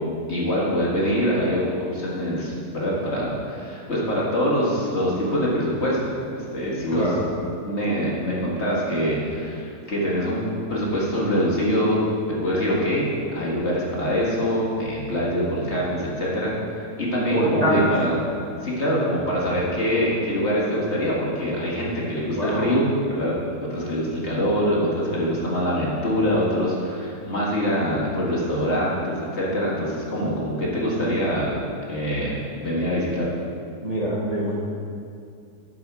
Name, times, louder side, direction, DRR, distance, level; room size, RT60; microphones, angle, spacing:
voice 1, 0.3-6.0 6.3-7.2 7.6-10.4 10.7-12.0 12.4-16.5 17.0-18.1 18.6-22.9 23.1-31.6 31.9-33.3, equal, 45° left, -5 dB, 2.1 m, -24 dB
voice 2, 6.9-7.3 17.3-17.9 22.4-22.7 33.8-34.6, right 1 dB, 30° right, -5 dB, 1.0 m, -24 dB
11.0 x 7.0 x 4.7 m, 2.4 s
omnidirectional pair, 1.7 m